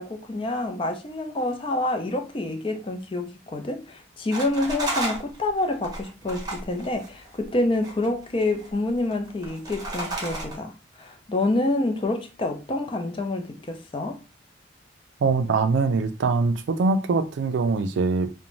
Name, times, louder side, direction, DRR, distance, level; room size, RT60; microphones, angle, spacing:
voice 1, 0.0-10.7 11.0-14.2, left 2 dB, 30° left, 0.4 m, -27 dB
sound 1, 4.3-7.4 7.7-8.7 9.0-10.6, right 2 dB, 20° right, 0.8 m, -32 dB
voice 2, 15.2-18.3, right 4 dB, 85° right, 0.4 m, -23 dB
2.5 x 2.1 x 3.0 m
head